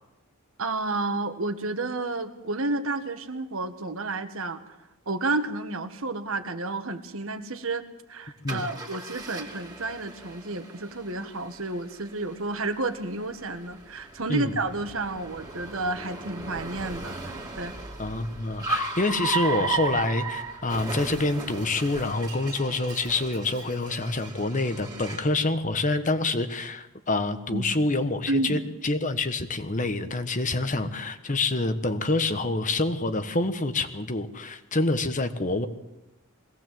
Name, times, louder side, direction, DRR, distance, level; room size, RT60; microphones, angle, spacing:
voice 1, 0.6-4.6 5.0-17.7 27.5-27.6 28.3-28.6, right 2 dB, 65° right, 8 dB, 1.6 m, -31 dB
Car, 8.5-25.4, right 4 dB, 15° right, 2.7 m, -36 dB
voice 2, 18.0-35.7, left 2 dB, 35° left, 10 dB, 1.2 m, -27 dB
21.5 x 17.5 x 7.7 m, 0.99 s
head